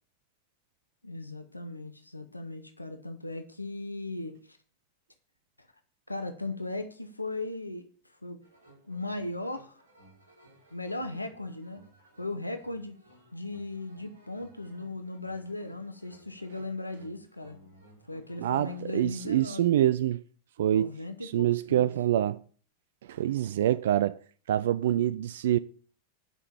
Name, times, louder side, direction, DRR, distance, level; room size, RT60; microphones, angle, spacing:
voice 1, 1.0-4.6 5.6-5.7 6.1-7.9 8.2-8.4 8.9-9.8 10.7-11.8 12.2-12.9 13.3-17.6 18.1-19.7 20.6-21.9, left 2 dB, 85° left, 0.9 m, -37 dB
sound 1, 8.4-19.3, right 1 dB, 75° right, 5.4 m, -59 dB
voice 2, 18.4-20.2 20.6-22.4 23.1-24.2 24.5-25.6, right 12 dB, 60° right, 0.3 m, -26 dB
9.5 x 5.8 x 7.0 m
figure-of-eight pair, 90°, 0 cm